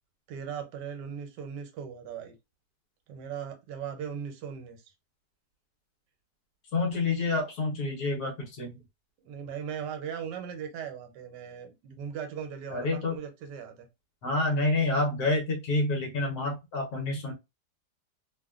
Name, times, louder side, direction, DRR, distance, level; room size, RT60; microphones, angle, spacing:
voice 1, 0.3-2.4 3.1-4.8 9.2-13.9, right 7 dB, 80° right, 1.3 m, -38 dB
voice 2, 6.7-8.8 12.7-13.2 14.2-17.3, left 2 dB, 65° left, 1.3 m, -28 dB
3.0 x 2.1 x 2.3 m
omnidirectional pair, 1.9 m